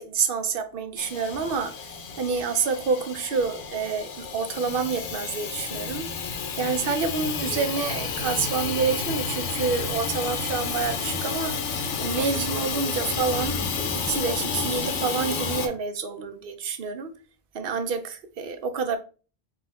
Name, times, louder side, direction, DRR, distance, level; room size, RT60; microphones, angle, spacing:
voice 1, 0.0-1.7 2.2-6.1 6.6-11.6 12.0-17.1 17.5-19.0, right 5 dB, 60° right, 0.7 m, -28 dB
Hiss / Toilet flush / Trickle dribble, 1.0-15.7, left 5 dB, 85° left, 1.0 m, -31 dB
sound 1, 5.0-15.5, right 1 dB, 60° left, 0.8 m, -46 dB
sound 2, 7.8-15.0, equal, ahead, 0.3 m, -45 dB
3.8 x 2.4 x 4.2 m
omnidirectional pair, 1.2 m